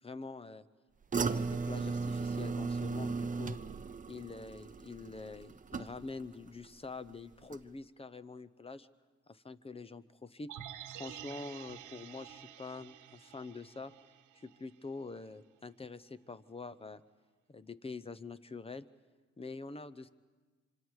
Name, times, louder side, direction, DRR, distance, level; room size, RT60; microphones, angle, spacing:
voice 1, 0.0-0.6 1.1-3.6 4.1-8.9 9.3-10.5 10.9-13.9 14.3-17.0 17.5-18.8 19.4-20.1, left 3 dB, 20° left, 15 dB, 0.7 m, -45 dB
sound 1, 1.1-6.3 6.6-7.1 7.5-7.6, right 4 dB, 25° right, 0.7 m, -36 dB
sound 2, 10.5-14.7 15.0-15.1, right 11 dB, 85° right, 1.2 m, -49 dB
25.5 x 25.5 x 4.8 m, 1.3 s
cardioid pair, 90°, 30 cm